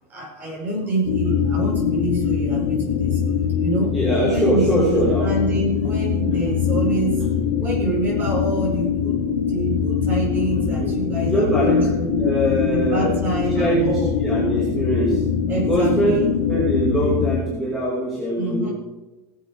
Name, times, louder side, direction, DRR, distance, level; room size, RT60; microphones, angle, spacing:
voice 1, 0.1-3.2 3.6-9.2 9.5-12.3 12.7-14.1 15.5-16.3 18.4-18.7, right 2 dB, 20° right, -4 dB, 5.8 m, -26 dB
sound 1, 1.0-17.4, left 7 dB, 70° left, 1.5 m, -22 dB
voice 2, 3.9-5.3 5.8-5.9 10.6-10.9 11.2-13.2 13.5-15.2 15.5-18.7, right 1 dB, ahead, -6 dB, 2.6 m, -23 dB
18.0 x 7.8 x 5.0 m, 1.1 s
supercardioid pair, 155°, 9 cm